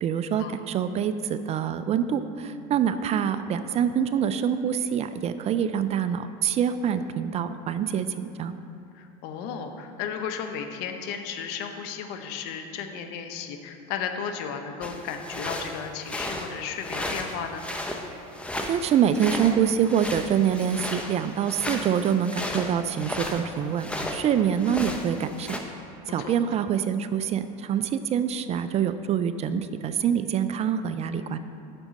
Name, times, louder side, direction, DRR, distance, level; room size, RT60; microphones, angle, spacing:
voice 1, 0.0-8.5 18.7-25.6 26.1-31.4, right 8 dB, 35° right, 11 dB, 0.4 m, -25 dB
voice 2, 8.9-17.6 26.2-26.3, left 7 dB, 65° left, 6 dB, 0.8 m, -34 dB
sound 1, 14.8-24.3 24.5-25.6, left 1 dB, 5° left, 0.8 m, -34 dB
8.9 x 6.1 x 4.1 m, 2.6 s
supercardioid pair, 100°, 18 cm